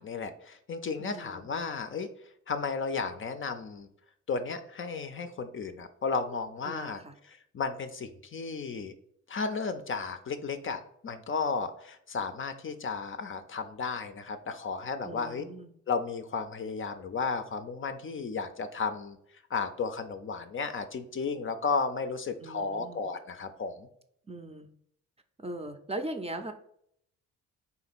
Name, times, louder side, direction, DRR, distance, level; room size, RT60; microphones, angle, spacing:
voice 1, 0.0-2.1 2.5-3.9 4.3-7.0 7.3-8.9 9.3-15.4 15.9-19.2 19.5-23.9, left 5 dB, 40° left, 8 dB, 0.5 m, -34 dB
voice 2, 1.0-1.5 6.6-7.2 15.1-15.7 22.4-23.0 24.3-24.7 25.4-26.5, right 1 dB, 20° right, 6 dB, 0.5 m, -39 dB
3.8 x 2.9 x 4.1 m, 0.70 s
supercardioid pair, 60°, 34 cm